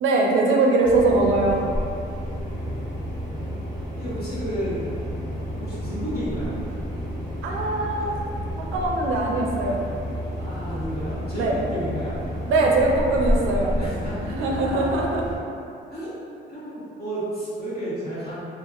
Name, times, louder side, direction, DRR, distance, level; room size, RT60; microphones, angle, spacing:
voice 1, 0.0-1.6 7.4-8.2 8.7-9.8 11.4-11.5 12.5-13.7 14.3-15.3, right 2 dB, 85° right, -1 dB, 0.4 m, -21 dB
sound 1, 0.8-15.4, equal, ahead, 1.3 m, -30 dB
voice 2, 2.6-3.1 4.0-4.9 5.6-6.6 10.3-12.2 13.8-14.3 15.9-16.1 16.5-18.3, right 1 dB, 50° left, -11 dB, 0.9 m, -32 dB
2.9 x 2.3 x 2.3 m, 2.5 s
cardioid pair, 90°, 20 cm